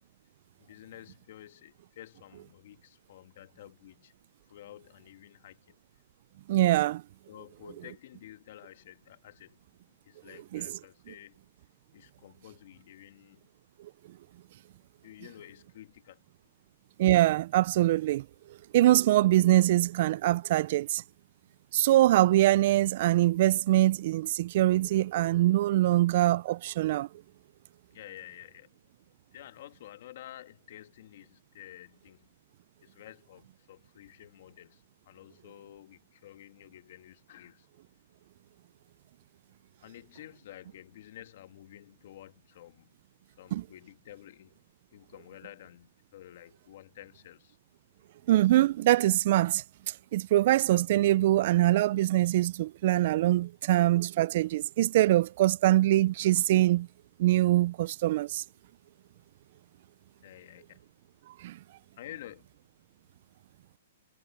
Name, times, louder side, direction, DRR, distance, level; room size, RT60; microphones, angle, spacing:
voice 1, 0.6-4.1 4.5-5.8 7.3-9.6 10.0-11.4 11.9-13.5 14.7-16.2 27.9-28.8 29.3-32.3 32.8-37.7 39.8-42.9 43.4-44.6 44.9-47.6 60.2-60.9 62.0-62.5, left 13 dB, 55° left, 2.0 m, -51 dB
voice 2, 6.5-7.0 10.5-10.6 17.0-18.2 18.7-21.0 21.7-27.1 43.5-43.6 48.3-49.6 50.1-56.9 57.2-58.4 61.4-61.6, right 15 dB, 45° right, 0.3 m, -23 dB
hypercardioid pair, 160°, 0 cm